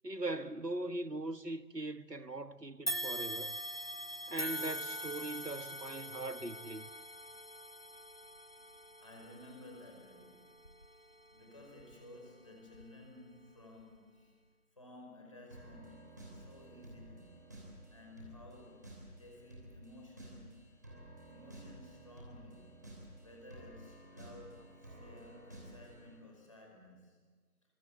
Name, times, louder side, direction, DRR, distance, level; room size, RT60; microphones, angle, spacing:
voice 1, 0.0-3.6 4.3-6.9, right 2 dB, 80° right, 1.6 m, -40 dB
sound 1, 2.9-12.2 12.7-12.9 13.8-13.9, equal, 35° left, 1.0 m, -43 dB
voice 2, 9.0-17.4 17.9-20.7 21.3-22.7 23.2-27.2, left 1 dB, 20° left, 5.0 m, -55 dB
sound 2, 15.5-26.2, right 1 dB, 10° right, 3.1 m, -53 dB
30.0 x 24.5 x 8.2 m
figure-of-eight pair, 170°, 48 cm